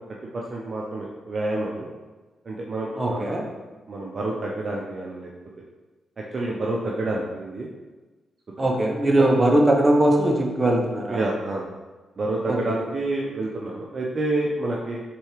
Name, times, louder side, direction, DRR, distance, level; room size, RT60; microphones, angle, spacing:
voice 1, 0.3-1.9 2.4-3.5 3.9-5.3 6.2-7.7 8.6-8.7 9.2-9.3 11.1-11.7 12.2-15.0, right 2 dB, 50° right, -2 dB, 0.6 m, -28 dB
voice 2, 3.0-3.4 8.6-11.3 12.5-12.8, right 1 dB, 30° right, 0 dB, 0.9 m, -20 dB
4.4 x 3.3 x 3.2 m, 1.2 s
supercardioid pair, 50°, 0 cm